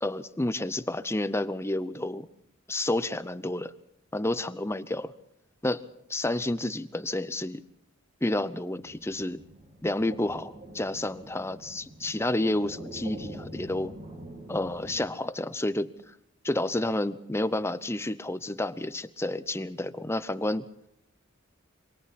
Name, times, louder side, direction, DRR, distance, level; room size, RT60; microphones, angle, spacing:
voice 1, 0.0-2.3 2.7-3.7 4.1-5.1 5.6-5.8 6.1-7.6 8.2-9.4 9.8-13.9 14.5-16.1 16.4-20.6, left 1 dB, 15° left, 14 dB, 0.7 m, -30 dB
sound 1, 8.7-15.0, right 1 dB, 30° right, 4.6 m, -45 dB
27.0 x 24.5 x 4.2 m, 0.75 s
head